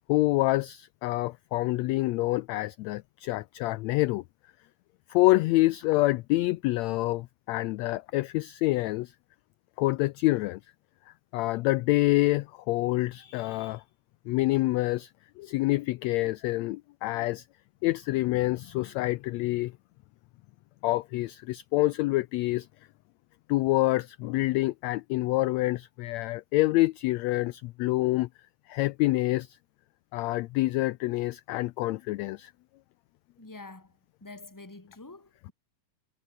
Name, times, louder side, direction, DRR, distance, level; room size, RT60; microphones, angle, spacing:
voice 1, 0.1-4.2 5.1-9.1 9.8-10.6 11.3-13.8 14.3-15.1 15.4-17.4 17.8-19.7 20.8-22.7 23.5-28.3 28.7-29.6 30.1-32.5, left 19 dB, 80° left, 1.6 m, -27 dB
voice 2, 33.4-33.9 34.2-35.5, left 3 dB, 5° left, 2.1 m, -46 dB
omnidirectional pair, 3.6 m